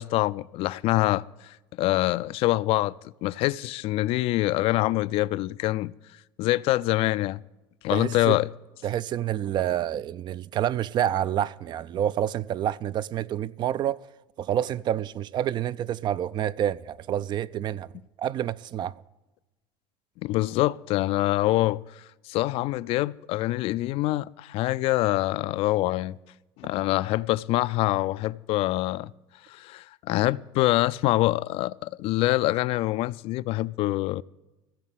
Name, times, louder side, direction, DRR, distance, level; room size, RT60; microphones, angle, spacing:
voice 1, 0.0-3.0 3.2-5.9 6.4-7.4 7.8-8.5 20.2-26.2 26.6-29.1 29.5-34.2, left 17 dB, 55° left, 0.4 m, -25 dB
voice 2, 7.9-8.4 8.8-14.1 14.4-17.9 18.2-18.9, right 11 dB, 40° right, 0.4 m, -28 dB
15.0 x 7.3 x 7.5 m
supercardioid pair, 100°, 12 cm